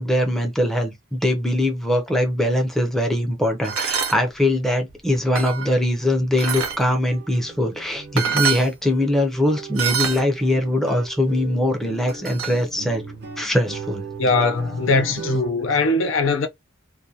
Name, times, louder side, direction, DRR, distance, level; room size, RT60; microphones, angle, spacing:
voice 1, 0.0-13.0 13.4-14.0, left 1 dB, ahead, 0.5 m, -22 dB
sound 1, 3.6-4.2 4.9-5.7 6.4-6.8 7.8-7.9 8.2-8.7 9.8-10.2 12.1-12.6, right 7 dB, 80° right, 0.8 m, -25 dB
sound 2, 5.9-6.1 6.4-15.5, right 4 dB, 50° right, 0.5 m, -38 dB
voice 2, 14.2-16.5, left 3 dB, 70° left, 0.5 m, -20 dB
2.4 x 2.2 x 2.7 m
head